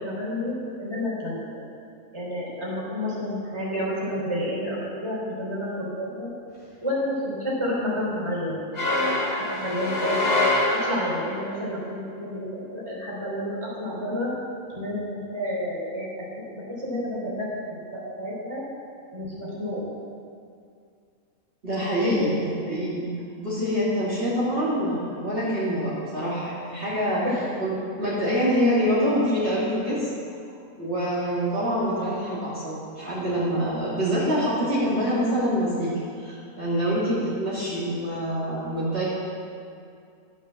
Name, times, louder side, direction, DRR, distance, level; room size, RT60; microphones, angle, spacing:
voice 1, 0.0-1.6 2.1-6.3 6.8-8.6 8.9-10.2 10.7-14.3 14.7-16.1 16.5-17.5 17.9-18.6 19.1-19.9 22.0-22.3 27.2-27.4, left 1 dB, 20° right, -6 dB, 3.4 m, -30 dB
sound 1, 8.7-11.4, left 2 dB, 40° left, 2.5 m, -24 dB
voice 2, 21.6-23.1 23.4-27.2 27.6-27.7 28.0-30.1 30.8-35.9 36.2-39.0, equal, 40° right, -11 dB, 3.1 m, -25 dB
13.0 x 6.6 x 7.4 m, 2.4 s
omnidirectional pair, 1.6 m